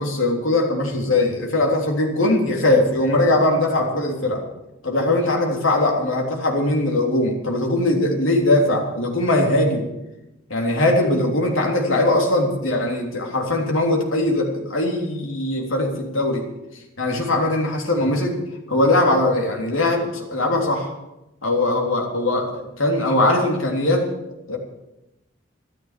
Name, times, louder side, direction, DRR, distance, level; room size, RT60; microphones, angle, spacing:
voice 1, 0.0-4.5 4.8-9.9 10.5-16.5 17.0-18.4 18.7-20.9 21.4-24.1 24.5-24.6, left 1 dB, 75° left, 0 dB, 3.4 m, -20 dB
13.5 x 13.0 x 7.6 m, 0.92 s
head